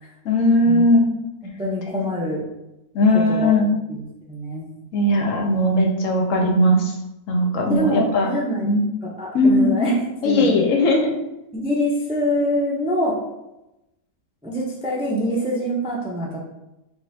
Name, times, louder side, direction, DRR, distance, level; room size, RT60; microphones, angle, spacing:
voice 1, 0.2-1.1 2.9-3.7 4.9-6.9 7.3-8.3 8.6-8.9 9.3-9.7 10.2-11.2, left 1 dB, 65° left, 1 dB, 0.9 m, -18 dB
voice 2, 1.6-2.5 3.3-3.5 3.9-4.7 7.7-8.7 9.0-10.6 11.5-13.2 14.4-16.4, equal, 5° right, -4 dB, 0.4 m, -24 dB
5.2 x 3.2 x 2.7 m, 0.93 s
omnidirectional pair, 1.6 m